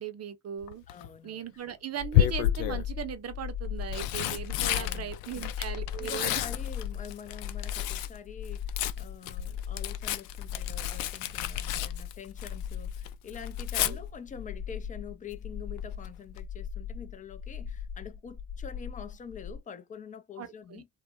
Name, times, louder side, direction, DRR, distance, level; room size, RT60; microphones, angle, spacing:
voice 1, 0.0-0.8 1.2-6.4 13.8-14.0 20.4-20.8, right 8 dB, 30° right, 0.6 m, -38 dB
Tearing, 0.6-1.1 2.1-2.9 3.6-8.2 8.4-12.7 13.0-13.9 15.8-16.1 16.4-16.5, left 12 dB, 70° left, 0.5 m, -31 dB
voice 2, 0.9-1.5 4.7-5.4 6.0-20.9, left 7 dB, 20° left, 0.3 m, -45 dB
sound 1, 2.0-19.6, left 8 dB, 40° left, 1.0 m, -38 dB
2.3 x 2.0 x 2.8 m
hypercardioid pair, 55°, 50 cm